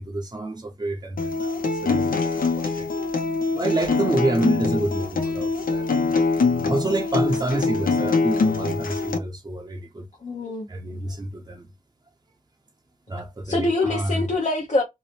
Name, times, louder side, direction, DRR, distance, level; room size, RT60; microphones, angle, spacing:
voice 1, 0.0-2.9 3.5-5.9 6.5-10.1 10.7-11.7 13.1-14.3, right 2 dB, 30° right, 0.6 m, -28 dB
Acoustic guitar, 1.2-9.2, left 4 dB, 85° left, 0.6 m, -24 dB
voice 2, 10.2-10.7 13.4-14.8, left 2 dB, 55° left, 0.8 m, -24 dB
2.7 x 2.0 x 3.1 m
cardioid pair, 40°, 14 cm